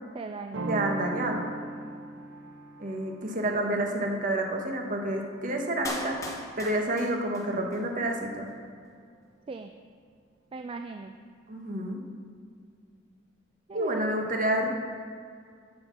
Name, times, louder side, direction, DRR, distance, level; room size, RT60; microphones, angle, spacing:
voice 1, 0.1-0.7 9.5-9.7 10.5-11.1 13.7-14.2, right 4 dB, 30° right, 6 dB, 0.3 m, -38 dB
sound 1, 0.5-6.1, right 2 dB, 75° right, 0.8 m, -39 dB
voice 2, 0.7-1.5 2.8-6.2 6.6-8.5 11.5-12.0 13.7-14.7, right 1 dB, 45° right, 2 dB, 1.3 m, -29 dB
Clapping, 5.8-7.8 8.1-8.2, left 1 dB, 15° left, 1.1 m, -38 dB
7.9 x 7.7 x 6.0 m, 2.1 s
head